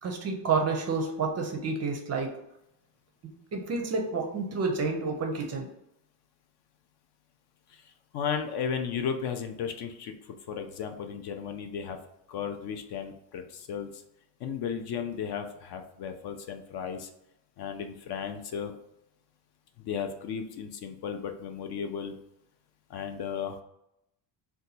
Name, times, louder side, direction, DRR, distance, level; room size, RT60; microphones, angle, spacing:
voice 1, 0.0-2.4 3.5-5.7, right 4 dB, 35° right, 3 dB, 0.4 m, -29 dB
voice 2, 7.7-10.1 10.5-12.0 12.3-14.0 14.4-17.1 17.6-18.7 19.8-22.2 22.9-23.6, left 7 dB, 55° left, 6 dB, 0.5 m, -35 dB
2.7 x 2.3 x 3.9 m, 0.82 s
cardioid pair, 125°, 49 cm